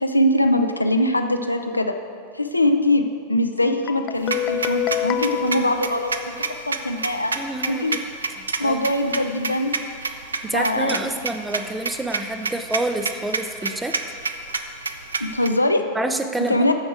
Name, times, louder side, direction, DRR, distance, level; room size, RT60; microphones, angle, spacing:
voice 1, 0.0-1.9 2.3-7.3 7.7-7.9 8.6-9.8 10.5-11.0 15.2-15.8 16.5-16.7, left 1 dB, 85° left, 6 dB, 0.6 m, -22 dB
Guitar, 3.9-6.7, left 12 dB, 35° left, 0.3 m, -27 dB
sound 1, 4.2-15.5, right 4 dB, 75° right, 0.5 m, -28 dB
voice 2, 7.4-8.0 8.4-8.8 10.4-14.0 15.9-16.6, right 2 dB, 10° right, 7 dB, 0.6 m, -28 dB
14.5 x 5.4 x 4.6 m, 2.3 s
figure-of-eight pair, 90°, 0 cm